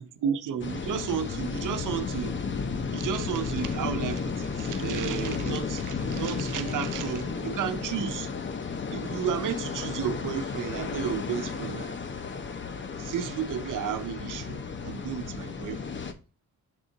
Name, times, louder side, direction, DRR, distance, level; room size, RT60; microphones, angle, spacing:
voice 1, 0.2-2.4 2.9-8.3 8.9-11.9 13.0-15.8, right 8 dB, 80° right, 0.7 m, -32 dB
sound 1, 0.6-16.1, left 5 dB, 40° left, 0.8 m, -33 dB
6.9 x 3.6 x 3.9 m
cardioid pair, 110°, 30 cm